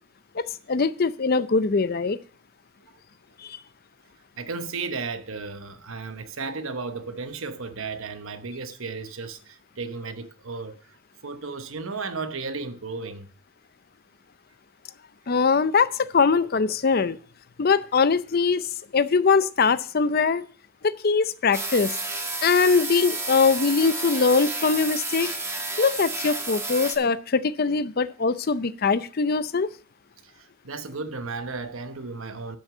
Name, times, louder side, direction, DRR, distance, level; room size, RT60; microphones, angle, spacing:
voice 1, 0.7-2.2 3.4-3.6 15.3-17.2 17.6-18.7 18.9-20.5 20.8-21.9 22.4-25.3 25.8-29.7, left 5 dB, 45° left, 0.5 m, -22 dB
voice 2, 4.4-11.0 11.2-13.3 30.2-32.6, right 4 dB, 80° right, 1.0 m, -34 dB
sound 1, 21.5-27.0, right 2 dB, 15° right, 1.5 m, -31 dB
11.5 x 6.3 x 5.0 m
head